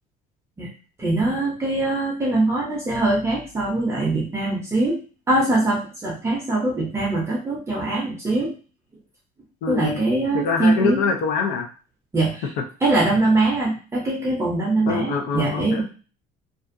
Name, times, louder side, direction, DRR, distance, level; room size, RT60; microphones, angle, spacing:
voice 1, 1.0-5.0 5.3-8.5 9.7-11.0 12.1-12.5 12.8-15.8, right 2 dB, 15° right, -3 dB, 0.7 m, -22 dB
voice 2, 9.6-10.0 10.3-11.7 14.9-15.8, left 5 dB, 80° left, 3 dB, 0.7 m, -24 dB
2.5 x 2.4 x 2.6 m, 0.36 s
cardioid pair, 135°, 16 cm